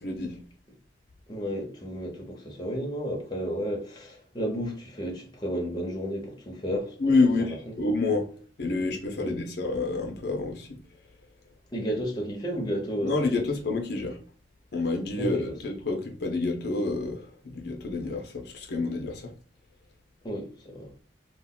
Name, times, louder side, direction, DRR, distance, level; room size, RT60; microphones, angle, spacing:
voice 1, 0.0-0.3 7.0-8.3 8.6-10.7 13.0-14.2 14.7-19.3, left 3 dB, 60° left, 0.6 m, -28 dB
voice 2, 1.3-7.5 9.2-9.4 11.7-13.5 15.2-15.5 20.2-20.9, equal, 25° left, 0.7 m, -32 dB
2.4 x 2.1 x 3.6 m
head